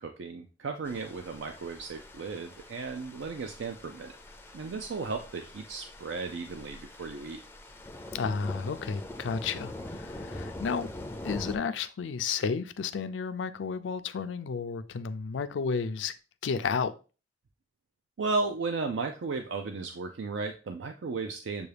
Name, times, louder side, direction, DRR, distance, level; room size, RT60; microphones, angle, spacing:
voice 1, 0.0-4.2 4.5-7.4 18.2-21.7, right 4 dB, 80° right, 0.4 m, -35 dB
sound 1, 0.8-11.6, left 1 dB, 15° left, 0.4 m, -43 dB
voice 2, 8.1-10.9 11.2-16.1 16.4-16.9, left 5 dB, 85° left, 0.4 m, -32 dB
6.8 x 2.3 x 3.3 m
head